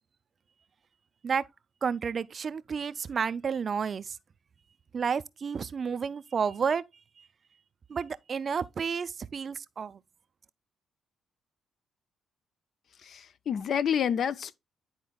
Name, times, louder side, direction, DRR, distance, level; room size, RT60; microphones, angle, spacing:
voice 1, 1.8-4.2 4.9-6.8 7.2-7.3 7.9-10.0, right 6 dB, 45° right, 0.3 m, -31 dB
voice 2, 13.0-14.5, left 8 dB, 60° left, 0.4 m, -29 dB
11.0 x 4.3 x 2.2 m
cardioid pair, 90°, 0 cm